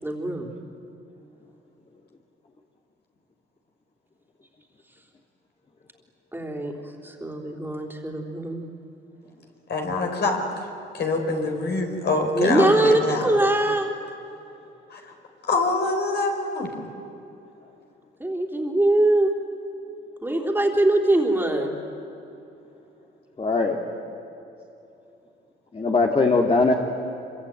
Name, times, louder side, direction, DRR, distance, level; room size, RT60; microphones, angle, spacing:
voice 1, 0.0-0.5 6.3-6.7 7.0-8.7 12.3-13.9 18.2-19.3 20.2-21.7, right 1 dB, 10° right, 2 dB, 3.7 m, -22 dB
voice 2, 9.7-10.7 10.9-13.3 14.9-15.1 15.4-16.7, left 3 dB, 55° left, 3 dB, 4.7 m, -25 dB
voice 3, 23.4-23.8 25.7-26.7, left 3 dB, 30° left, 1 dB, 2.4 m, -20 dB
26.0 x 24.5 x 9.2 m, 2.9 s
cardioid pair, 90°, 20 cm